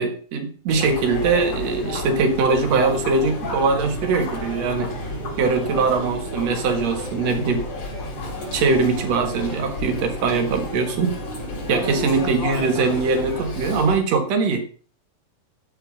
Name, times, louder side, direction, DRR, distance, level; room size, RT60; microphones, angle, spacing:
voice 1, 0.0-4.9 5.4-7.7 8.5-11.2 11.7-14.7, right 4 dB, 55° right, 6 dB, 2.5 m, -21 dB
Chatter, 0.7-14.0, left 1 dB, 45° left, 4.9 m, -31 dB
14.0 x 5.7 x 5.6 m, 0.41 s
omnidirectional pair, 4.1 m